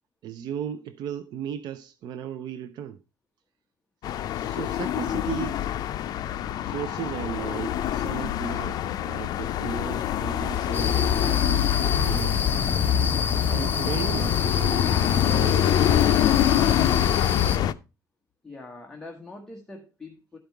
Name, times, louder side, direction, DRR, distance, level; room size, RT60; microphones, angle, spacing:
voice 1, 0.2-3.0 4.3-5.6 6.6-12.4 13.5-16.3, right 9 dB, 70° right, 0.6 m, -36 dB
sound 1, 4.0-17.7, left 11 dB, 60° left, 0.5 m, -25 dB
sound 2, 10.7-17.6, left 7 dB, 25° left, 0.7 m, -26 dB
voice 2, 18.4-20.4, left 2 dB, 10° left, 1.2 m, -43 dB
12.5 x 5.3 x 4.5 m
cardioid pair, 155°, 8 cm